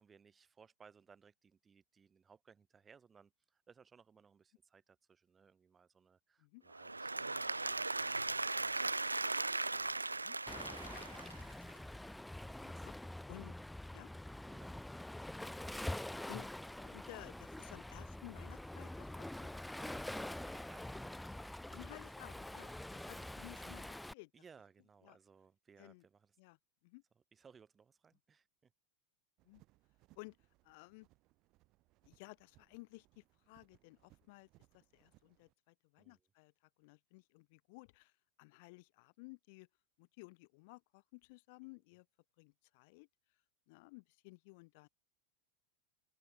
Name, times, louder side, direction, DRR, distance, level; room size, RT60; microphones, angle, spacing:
voice 1, 0.0-11.3 12.3-13.1 14.4-14.8 19.9-21.4 22.1-22.2 24.3-26.4 27.1-28.7 36.0-36.3 41.6-41.8, right 6 dB, 20° right, 5.1 m, -64 dB
Applause / Crowd, 6.7-11.7, right 3 dB, 85° right, 0.4 m, -38 dB
Waves surf, 10.5-24.1, left 1 dB, 5° left, 0.6 m, -46 dB
voice 2, 12.6-12.9 13.3-13.5 13.9-14.1 16.3-16.5 16.8-19.5 21.7-24.3 25.0-25.2 25.8-26.0 26.4-26.6 26.8-27.0 29.5-29.6 30.1-30.4 30.6-31.1 32.0-34.5 34.7-36.5 36.8-38.1 38.4-39.7 40.0-42.0 42.4-43.1 43.7-44.9, left 27 dB, 50° left, 1.1 m, -55 dB
sound 1, 29.4-35.5, right 20 dB, 45° right, 4.1 m, -70 dB
figure-of-eight pair, 85°, 0 cm